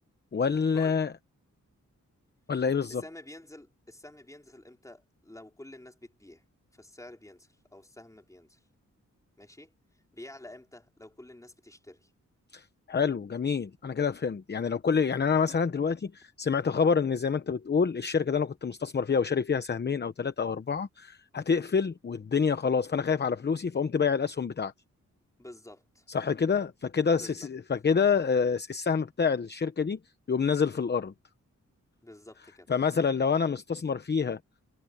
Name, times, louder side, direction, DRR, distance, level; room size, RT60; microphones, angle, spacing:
voice 1, 0.3-1.1 2.5-3.0 12.5-24.7 26.1-30.0 30.3-31.1 32.7-34.4, left 6 dB, 35° left, 0.9 m, -27 dB
voice 2, 2.9-6.4 6.7-8.7 9.4-12.1 25.4-26.1 27.1-27.5 32.0-32.7, left 1 dB, 10° left, 4.4 m, -49 dB
wide cardioid pair, 165°, 30 cm